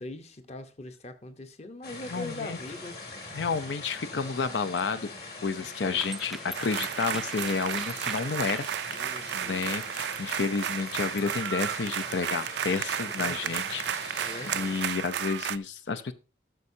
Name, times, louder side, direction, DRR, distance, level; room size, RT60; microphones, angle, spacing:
voice 1, 0.0-2.9 9.0-9.6 13.0-13.7 14.2-14.8, left 2 dB, 35° left, 0.8 m, -41 dB
sound 1, 1.8-14.9, left 3 dB, 60° left, 2.4 m, -42 dB
voice 2, 2.1-2.6 3.3-5.1 5.4-9.1 9.3-14.0 14.5-16.1, left 5 dB, 85° left, 0.6 m, -31 dB
sound 2, 4.7-11.4, right 1 dB, ahead, 0.4 m, -43 dB
sound 3, 6.5-15.6, right 10 dB, 75° right, 0.4 m, -33 dB
14.0 x 6.5 x 2.7 m
head